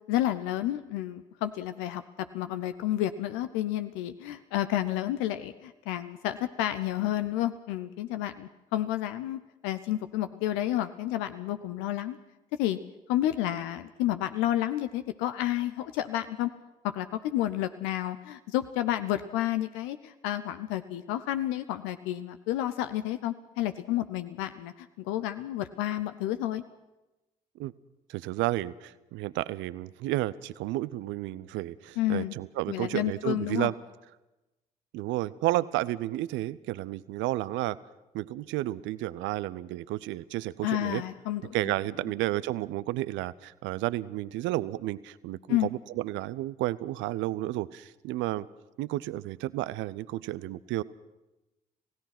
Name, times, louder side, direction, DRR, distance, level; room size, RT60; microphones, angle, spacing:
voice 1, 0.1-2.0 2.3-12.2 12.6-12.8 13.1-16.5 16.9-26.6 32.0-32.3 32.7-33.7 40.6-41.7 45.5-45.7, left 13 dB, 70° left, 11 dB, 0.7 m, -30 dB
voice 2, 28.1-33.7 34.9-37.8 38.1-41.0 41.5-48.5 48.8-50.8, right 16 dB, 65° right, 19 dB, 0.7 m, -32 dB
27.0 x 16.5 x 6.0 m, 1.0 s
figure-of-eight pair, 45°, 21 cm